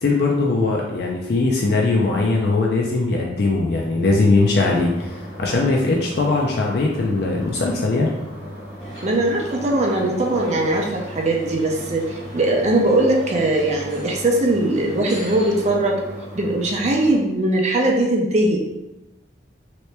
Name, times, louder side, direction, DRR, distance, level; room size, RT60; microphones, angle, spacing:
voice 1, 0.0-8.1, left 3 dB, 55° left, -1 dB, 0.4 m, -20 dB
sound 1, 4.6-17.2, equal, 10° right, 1.1 m, -37 dB
sound 2, 8.8-15.8, right 1 dB, 40° left, 1.4 m, -39 dB
voice 2, 9.0-16.0 16.3-18.6, right 1 dB, 35° right, 0 dB, 0.5 m, -20 dB
3.2 x 3.0 x 3.3 m, 0.99 s
head